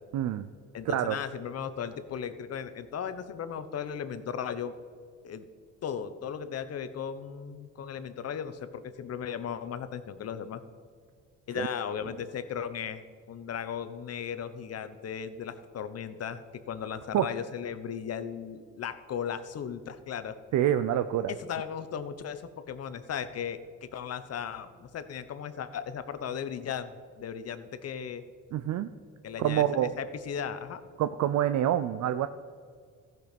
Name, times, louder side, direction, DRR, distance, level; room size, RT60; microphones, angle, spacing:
voice 1, 0.1-0.5 0.9-1.2 11.6-11.7 17.1-17.3 20.5-21.3 28.5-28.9 29.4-29.9 31.0-32.3, right 11 dB, 70° right, 11 dB, 0.5 m, -26 dB
voice 2, 0.7-4.7 5.2-5.5 5.8-10.6 11.5-13.0 13.3-20.4 21.3-28.2 29.2-30.8, left 8 dB, 55° left, 11 dB, 0.9 m, -36 dB
15.0 x 6.1 x 5.2 m, 2.1 s
cardioid pair, 90°, 30 cm